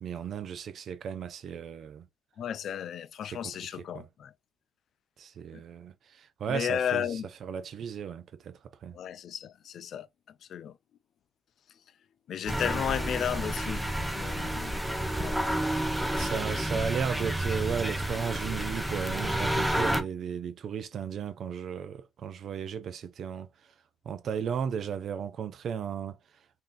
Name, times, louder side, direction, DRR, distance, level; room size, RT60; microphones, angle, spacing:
voice 1, 0.0-2.1 3.3-4.1 5.2-9.0 16.2-23.5 24.0-26.2, right 7 dB, 60° right, 0.5 m, -35 dB
voice 2, 2.4-4.3 5.5-5.6 6.5-7.3 8.9-10.1 10.5-10.8 12.3-14.8 15.2-15.4 16.2-16.3, left 9 dB, 65° left, 0.4 m, -34 dB
sound 1, 12.5-20.0, right 1 dB, 5° right, 0.7 m, -30 dB
3.1 x 2.8 x 3.9 m
cardioid pair, 90°, 0 cm